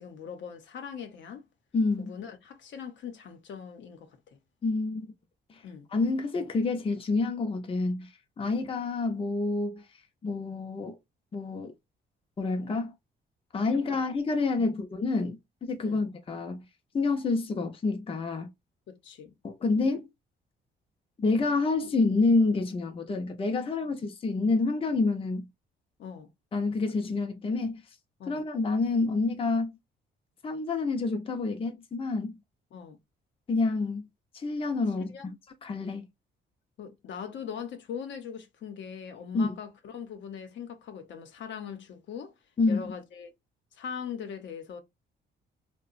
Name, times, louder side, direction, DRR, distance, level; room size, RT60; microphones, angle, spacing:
voice 1, 0.0-1.5 2.0-4.4 5.6-5.9 8.4-8.6 14.6-14.7 15.8-16.0 18.9-19.3 26.0-26.3 28.2-28.4 32.7-33.0 35.1-35.3 36.8-42.3 42.7-43.3 43.8-44.8, left 7 dB, 70° left, 0.7 m, -41 dB
voice 2, 1.7-2.1 4.6-5.1 5.5-5.6 5.9-9.8 10.2-11.0 11.3-11.7 12.4-12.9 13.5-16.6 16.9-18.5 19.4-20.1 21.2-25.5 26.5-27.8 28.3-29.8 30.4-32.4 33.5-34.1 34.3-35.3 35.6-36.1 39.3-39.6 42.6-42.9, left 3 dB, 30° left, 0.6 m, -28 dB
2.8 x 2.1 x 2.5 m
cardioid pair, 90°, 20 cm